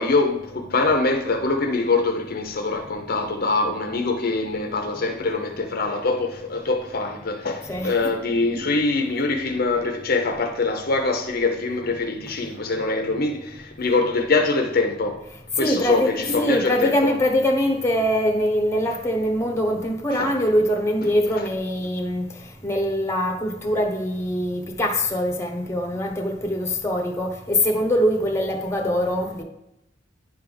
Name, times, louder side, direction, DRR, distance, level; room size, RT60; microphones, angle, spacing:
voice 1, 0.0-15.2 15.6-17.2 20.1-20.3, left 3 dB, 50° left, 0.7 m, -24 dB
voice 2, 7.7-8.1 15.6-22.3 22.6-29.4, equal, 15° left, 1.0 m, -23 dB
9.7 x 3.4 x 5.4 m
head